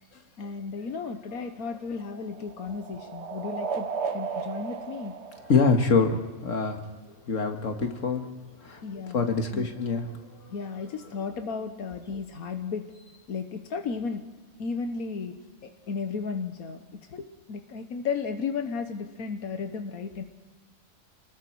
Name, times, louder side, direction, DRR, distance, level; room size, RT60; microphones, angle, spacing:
voice 1, 0.4-3.9 4.1-5.1 8.8-9.7 10.5-14.2 14.6-16.8 17.1-20.2, left 5 dB, 85° left, 7 dB, 1.6 m, -34 dB
sound 1, 1.5-6.3, right 5 dB, 55° right, 1.3 m, -35 dB
voice 2, 5.5-6.8 7.3-8.2 8.6-8.8 9.1-10.1, left 4 dB, 60° left, 5 dB, 2.1 m, -24 dB
29.0 x 20.5 x 4.7 m, 1.3 s
omnidirectional pair, 1.5 m